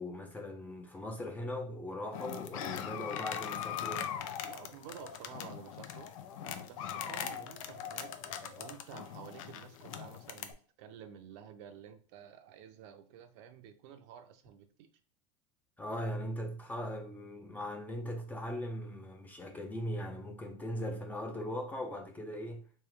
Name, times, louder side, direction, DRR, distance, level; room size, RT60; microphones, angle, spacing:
voice 1, 0.0-4.1 15.8-22.6, left 1 dB, 10° left, 0.5 m, -39 dB
sound 1, 2.1-10.5, left 9 dB, 85° left, 0.5 m, -41 dB
voice 2, 4.4-6.1 6.4-14.9, right 8 dB, 60° right, 0.6 m, -51 dB
3.2 x 2.9 x 3.5 m
supercardioid pair, 145°, 17 cm